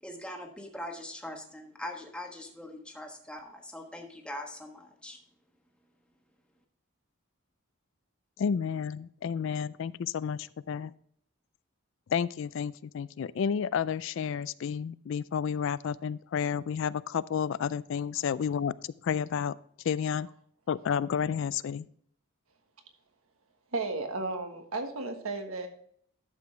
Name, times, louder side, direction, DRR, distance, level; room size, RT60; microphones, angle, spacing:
voice 1, 0.0-5.2, left 1 dB, 5° left, 2 dB, 1.3 m, -42 dB
voice 2, 8.4-10.9 12.1-19.6 19.8-20.3 20.7-21.9, left 7 dB, 60° left, 18 dB, 0.3 m, -31 dB
voice 3, 23.7-25.7, right 3 dB, 75° right, 5 dB, 1.4 m, -34 dB
11.5 x 7.0 x 3.2 m, 0.62 s
head